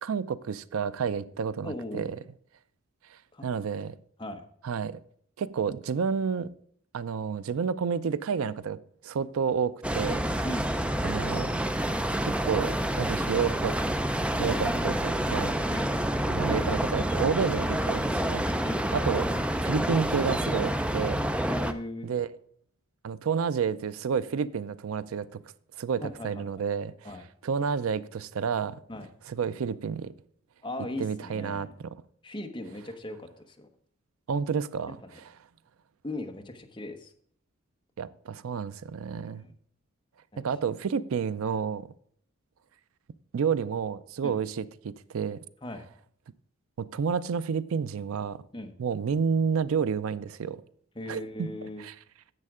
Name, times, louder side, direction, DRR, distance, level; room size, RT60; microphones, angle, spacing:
voice 1, 0.0-2.1 3.1-4.0 4.6-5.0 5.4-6.5 6.9-10.3 11.0-11.5 12.2-13.8 14.4-15.6 16.3-18.5 18.9-21.3 22.0-22.3 23.0-25.4 25.8-26.9 27.4-28.8 29.3-30.1 31.0-32.0 34.3-35.3 38.0-39.5 40.4-41.9 43.3-45.4 46.8-48.4 48.8-50.6 51.1-51.5 51.8-51.9, right 6 dB, 80° right, 0.4 m, -30 dB
voice 2, 1.6-2.2 3.3-3.5 4.2-4.4 10.4-10.7 15.7-15.9 18.6-18.9 21.5-22.1 26.0-26.5 27.0-27.3 28.9-29.1 30.6-31.7 32.2-33.7 35.0-35.2 36.0-37.1 39.2-39.5 40.3-40.4 44.2-44.4 45.6-45.9 48.5-48.7 50.9-51.8, left 1 dB, 25° left, 0.9 m, -38 dB
sound 1, 9.8-21.7, right 1 dB, 5° right, 0.4 m, -28 dB
10.5 x 7.5 x 3.7 m
head